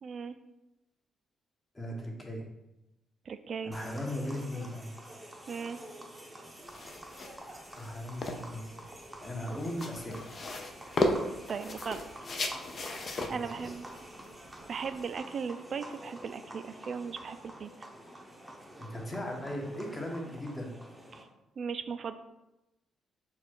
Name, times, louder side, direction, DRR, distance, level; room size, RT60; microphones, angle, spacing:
voice 1, 0.0-0.3 3.3-3.8 5.5-5.8 11.5-12.0 13.0-13.8 14.7-17.7 21.1-21.3 21.6-22.2, right 6 dB, 55° right, 11 dB, 0.3 m, -37 dB
voice 2, 1.7-2.4 3.6-4.9 7.8-8.7 9.2-10.3 13.4-13.7 18.8-20.7, left 1 dB, 20° left, 1 dB, 1.0 m, -38 dB
sound 1, 3.7-21.2, right 1 dB, 10° right, 0.7 m, -48 dB
sound 2, 6.6-15.2, left 2 dB, 45° left, 0.5 m, -36 dB
4.2 x 2.4 x 4.4 m, 0.95 s
cardioid pair, 80°, 0 cm